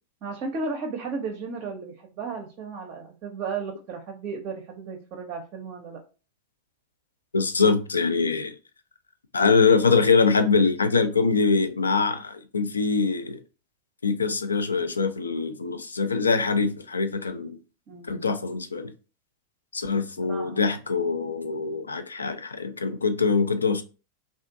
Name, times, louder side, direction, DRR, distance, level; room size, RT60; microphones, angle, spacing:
voice 1, 0.2-6.0 17.9-18.3 20.2-20.6, right 4 dB, 35° right, 0.5 m, -34 dB
voice 2, 7.3-8.5 9.3-13.4 14.0-17.6 18.1-18.9 19.7-23.8, left 4 dB, 75° left, 0.3 m, -23 dB
2.5 x 2.3 x 2.5 m
figure-of-eight pair, 90°, 0 cm